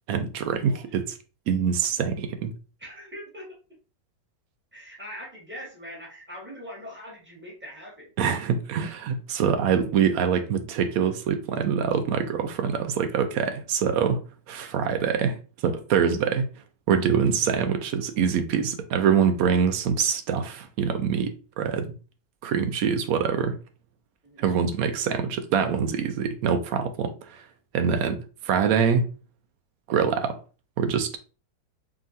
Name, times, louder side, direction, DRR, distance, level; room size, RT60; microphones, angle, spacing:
voice 1, 0.1-1.2 1.5-2.5 8.2-16.5 16.9-21.9 22.4-23.6 24.4-27.4 27.7-29.1 29.9-30.4 30.8-31.2, right 7 dB, 80° right, 0.7 m, -25 dB
voice 2, 2.8-3.5 4.7-8.1 24.2-24.4, equal, 5° right, 1.4 m, -42 dB
4.8 x 2.9 x 2.6 m
omnidirectional pair, 2.0 m